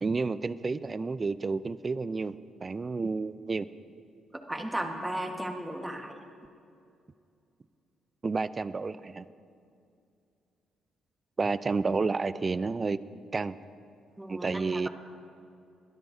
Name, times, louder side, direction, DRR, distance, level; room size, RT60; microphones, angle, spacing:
voice 1, 0.0-2.4 2.6-3.7 8.2-9.3 11.4-13.0 13.3-13.6 14.3-14.9, right 4 dB, 30° right, 16 dB, 0.4 m, -30 dB
voice 2, 4.5-6.2 14.2-14.9, right 1 dB, 10° right, 3 dB, 1.3 m, -35 dB
22.0 x 12.5 x 2.7 m, 2.5 s
cardioid pair, 90°, 0 cm